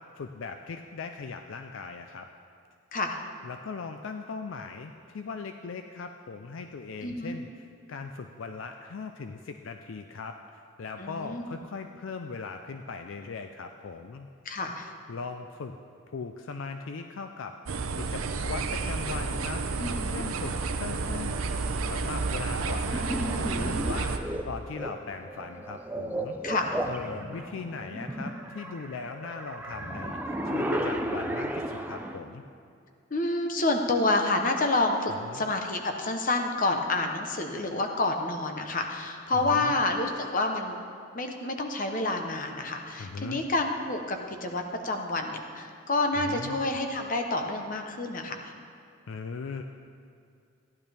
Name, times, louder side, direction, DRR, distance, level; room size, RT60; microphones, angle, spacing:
voice 1, 0.0-2.3 3.4-14.3 15.1-15.8 16.1-19.6 20.1-21.5 21.9-26.4 26.8-32.4 35.2-35.4 39.3-39.8 43.0-43.4 46.2-46.6 49.1-49.6, left 4 dB, 65° left, 6 dB, 0.4 m, -39 dB
voice 2, 7.0-7.4 11.0-11.5 14.4-14.9 19.8-20.2 23.5-24.0 26.4-26.8 33.1-40.8 41.1-48.5, left 2 dB, 40° left, 4 dB, 0.8 m, -29 dB
sound 1, 17.7-24.2, right 4 dB, 85° right, 0.7 m, -30 dB
sound 2, 22.9-32.2, right 1 dB, 10° right, 0.5 m, -34 dB
15.0 x 10.5 x 3.4 m, 2.4 s
head